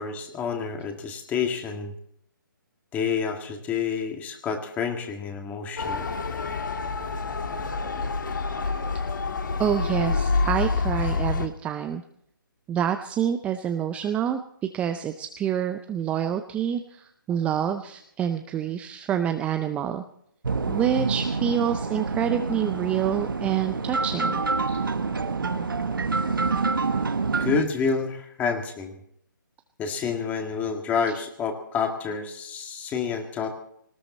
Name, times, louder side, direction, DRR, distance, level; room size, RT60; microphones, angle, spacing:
voice 1, 0.0-1.9 2.9-6.1 24.7-24.8 27.4-29.0 29.8-33.5, left 6 dB, 15° left, 5 dB, 1.8 m, -28 dB
Motor vehicle (road) / Siren, 5.8-11.5, left 4 dB, 65° left, 1.8 m, -27 dB
voice 2, 9.6-12.0 12.7-14.4 14.7-20.0 20.7-24.4, right 9 dB, 10° right, 8 dB, 0.5 m, -27 dB
sound 1, 20.4-27.6, right 4 dB, 75° right, 1.4 m, -27 dB
19.0 x 17.0 x 4.2 m, 0.73 s
figure-of-eight pair, 145°, 11 cm